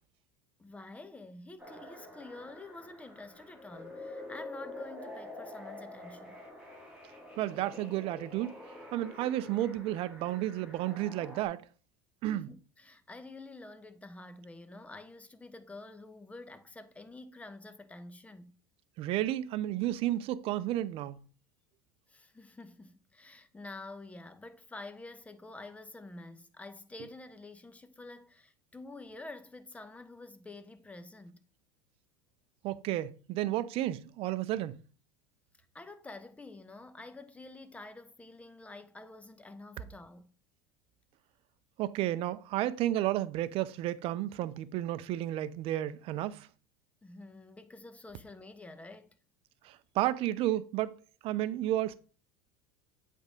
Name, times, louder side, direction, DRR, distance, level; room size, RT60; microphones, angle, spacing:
voice 1, 0.6-6.4 12.3-18.6 22.1-31.4 35.7-40.3 47.0-49.2, left 2 dB, 10° left, 0.9 m, -48 dB
sound 1, 1.6-11.5, left 1 dB, 5° right, 4.1 m, -47 dB
voice 2, 7.4-8.6 8.9-11.7 12.2-12.5 19.0-21.2 32.6-34.8 41.8-46.5 49.6-50.9 51.2-51.9, right 14 dB, 55° right, 0.6 m, -32 dB
8.0 x 3.7 x 5.2 m
hypercardioid pair, 90°, 12 cm